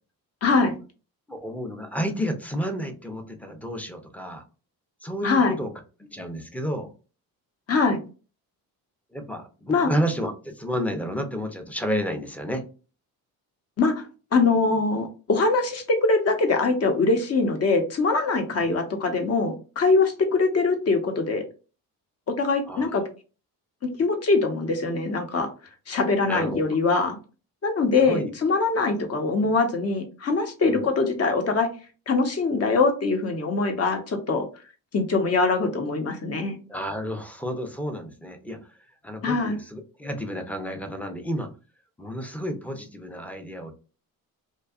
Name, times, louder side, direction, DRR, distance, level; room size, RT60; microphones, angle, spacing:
voice 1, 0.4-0.7 5.2-5.5 7.7-8.0 9.7-9.9 13.8-14.0 14.3-21.4 22.4-23.0 23.8-25.5 25.9-27.2 27.6-31.7 32.1-34.5 34.9-36.6 39.2-39.6, left 3 dB, 40° left, 5 dB, 0.8 m, -23 dB
voice 2, 1.3-4.4 5.0-5.7 6.1-6.9 9.1-12.6 18.6-18.7 22.7-22.9 26.2-26.6 28.1-28.3 30.6-30.9 36.7-38.7 39.0-41.5 42.0-43.7, equal, 5° left, 5 dB, 0.5 m, -31 dB
2.7 x 2.3 x 2.3 m, 0.34 s
cardioid pair, 90°, 37 cm